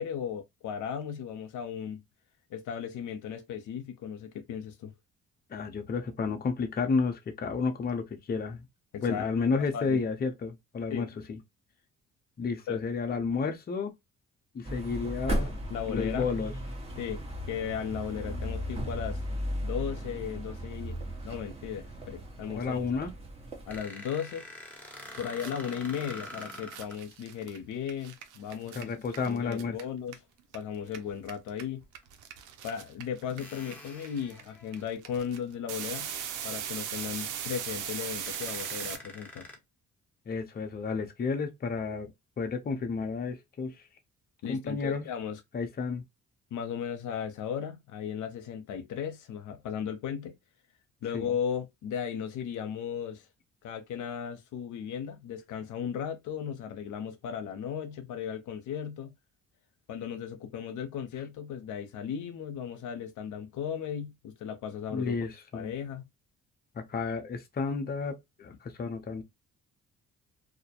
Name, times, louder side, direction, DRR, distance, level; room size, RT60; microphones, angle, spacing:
voice 1, 0.0-2.0 2.5-4.9 8.9-9.3 9.7-10.0 10.9-11.1 12.7-12.8 15.7-16.3 17.0-19.2 19.6-21.0 21.2-22.8 23.7-24.4 25.2-28.9 29.3-30.2 30.5-31.8 32.6-36.1 36.4-39.5 44.4-45.4 46.5-50.3 51.0-53.3 53.6-59.1 59.9-66.0, left 8 dB, 80° left, 0.6 m, -36 dB
voice 2, 5.5-8.7 9.0-11.4 12.4-13.9 14.5-15.5 15.9-16.5 22.6-23.1 28.7-29.8 40.3-42.1 42.4-43.8 44.5-45.0 45.5-46.0 51.1-51.3 64.9-65.7 66.7-69.2, left 4 dB, 30° left, 0.6 m, -31 dB
sound 1, 14.6-23.8, equal, 20° right, 1.0 m, -36 dB
sound 2, 23.7-27.0 29.1-29.3 31.0-31.1 32.0-32.1 33.4-35.2 35.7-35.8 36.2-36.3 37.7-37.8 38.2-39.6, left 1 dB, 5° left, 0.9 m, -46 dB
sound 3, 24.8-24.9 25.1-30.6 30.8-39.0, right 9 dB, 90° right, 0.6 m, -39 dB
2.3 x 2.1 x 2.7 m
cardioid pair, 90°, 30 cm